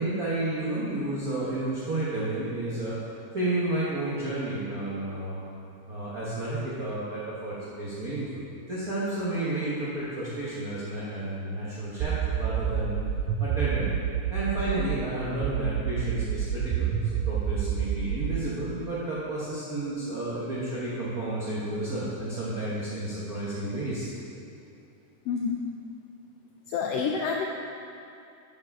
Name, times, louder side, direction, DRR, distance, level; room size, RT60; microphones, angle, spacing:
voice 1, 0.0-3.0 3.3-5.4 5.9-13.0 13.4-13.9 14.3-16.9 17.3-24.1, right 1 dB, 65° right, -9 dB, 0.9 m, -31 dB
sound 1, 12.0-15.0 15.4-18.4, right 9 dB, 85° right, 2.0 m, -28 dB
voice 2, 25.3-25.6 26.7-27.5, left 6 dB, 85° left, 0 dB, 1.4 m, -28 dB
7.5 x 4.8 x 5.4 m, 2.6 s
omnidirectional pair, 3.3 m